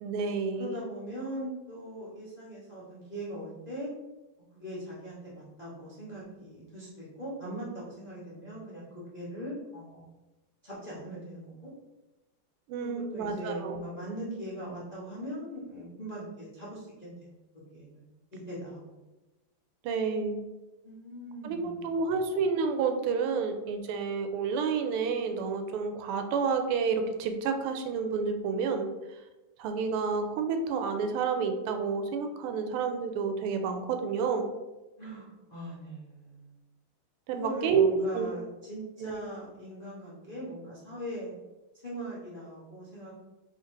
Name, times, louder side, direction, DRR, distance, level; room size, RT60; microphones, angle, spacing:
voice 1, 0.0-0.7 12.7-13.8 19.8-20.4 21.4-28.9 29.6-34.4 37.3-38.3 39.0-39.2, right 5 dB, 90° right, 6 dB, 1.5 m, -29 dB
voice 2, 0.6-3.9 4.5-8.9 9.1-10.1 10.6-11.7 12.8-17.2 17.7-18.0 18.3-19.0 20.8-21.9 35.0-36.5 37.3-41.3 41.8-43.2, right 1 dB, 70° left, -7 dB, 0.4 m, -40 dB
3.7 x 2.8 x 4.5 m, 1.1 s
omnidirectional pair, 2.4 m